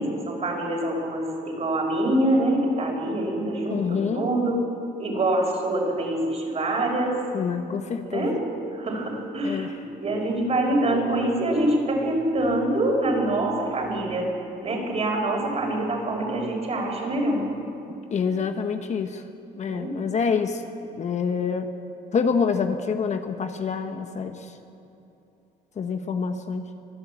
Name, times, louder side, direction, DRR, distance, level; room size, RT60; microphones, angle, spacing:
voice 1, 0.0-4.6 5.0-7.2 8.0-8.4 8.7-9.7 10.0-14.3 14.6-17.4 19.6-19.9, right 1 dB, 40° right, 0 dB, 5.7 m, -25 dB
voice 2, 3.7-4.3 7.3-8.3 9.4-9.7 18.1-19.2 19.6-20.6 20.9-21.7 22.1-24.4 25.8-26.7, left 6 dB, 45° left, 7 dB, 1.3 m, -26 dB
24.5 x 13.5 x 8.8 m, 2.8 s
cardioid pair, 110°, 17 cm